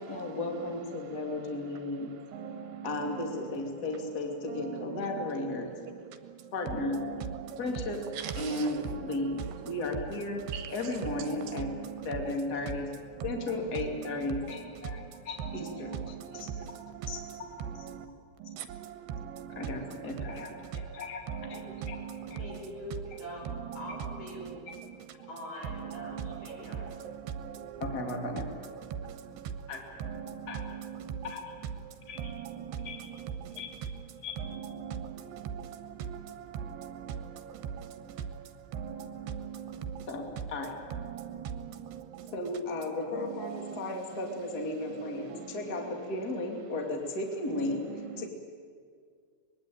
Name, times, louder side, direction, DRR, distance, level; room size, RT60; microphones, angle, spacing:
voice 1, 0.0-2.1 2.8-5.7 6.5-7.0 7.6-8.0 8.3-10.4 10.7-11.7 12.0-12.9 13.2-16.5 17.1-17.2 17.7-17.9 19.6-21.2 21.5-22.0 22.3-22.4 27.8-28.5 29.7-30.0 30.5-30.6 31.2-31.4 32.1-32.3 32.8-33.0 33.6-33.7 34.2-34.3 40.1-40.2 40.5-40.7 42.3-48.3, left 2 dB, 30° left, 2 dB, 2.5 m, -35 dB
voice 2, 2.3-2.9 7.1-7.6 8.2-8.5 10.5-10.7 15.8-17.2 17.9-18.0 18.5-19.6 21.5-22.3 25.9-27.8 28.9-29.4 30.1-31.2 32.3-32.9 33.4-33.6 34.8-38.1 38.7-40.1 41.1-42.3 43.5-43.7 45.3-45.5, right 8 dB, 80° right, 9 dB, 3.3 m, -40 dB
voice 3, 22.3-23.5 23.7-24.5 25.3-26.9, left 1 dB, 70° left, -2 dB, 8.4 m, -43 dB
24.0 x 20.5 x 9.2 m, 2.1 s
omnidirectional pair, 4.6 m